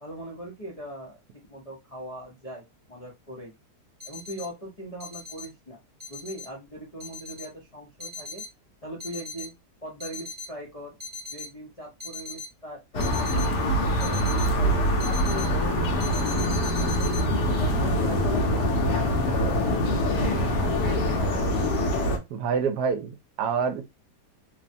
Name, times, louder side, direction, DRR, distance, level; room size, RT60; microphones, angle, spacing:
voice 1, 0.0-3.5 4.0-5.8 6.1-8.4 8.8-9.5 9.8-11.0 11.3-17.1 17.6-21.5, right 1 dB, 45° left, 0.4 m, -41 dB
sound 1, 4.0-4.5 5.0-5.4 6.0-6.4 7.0-7.5 8.0-8.5 9.0-9.5 10.0-10.5 11.0-11.5 12.0-12.5 13.0-13.5 14.0-14.5 15.0-15.5 16.0-17.2, left 4 dB, 30° right, 0.6 m, -38 dB
sound 2, 12.9-22.2, equal, 85° left, 1.3 m, -24 dB
voice 2, 22.3-23.9, right 6 dB, 80° right, 1.1 m, -27 dB
3.1 x 2.1 x 2.6 m
omnidirectional pair, 1.7 m